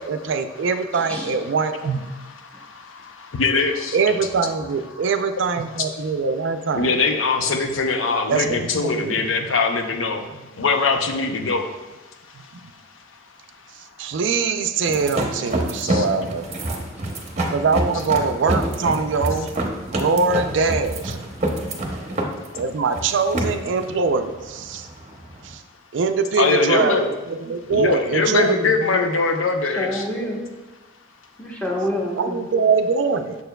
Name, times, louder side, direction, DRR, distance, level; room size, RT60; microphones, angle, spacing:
voice 1, 0.0-2.1 3.9-6.9 8.3-9.5 10.3-10.5 12.3-12.4 14.0-16.5 17.5-19.5 19.9-21.2 22.5-24.9 25.4-25.6 25.9-29.0 32.1-33.4, right 4 dB, 65° right, 8 dB, 0.4 m, -23 dB
voice 2, 0.9-1.4 29.6-30.4 31.4-32.4, left 1 dB, 10° left, -2 dB, 0.9 m, -27 dB
voice 3, 2.5-4.0 6.7-10.2 10.6-11.7 12.4-12.5 15.8-16.0 26.4-27.1 27.7-30.1, left 4 dB, 80° left, 5 dB, 0.6 m, -22 dB
sound 1, 14.9-25.5, right 1 dB, 35° right, 0.7 m, -27 dB
6.8 x 6.7 x 2.2 m, 1.1 s
head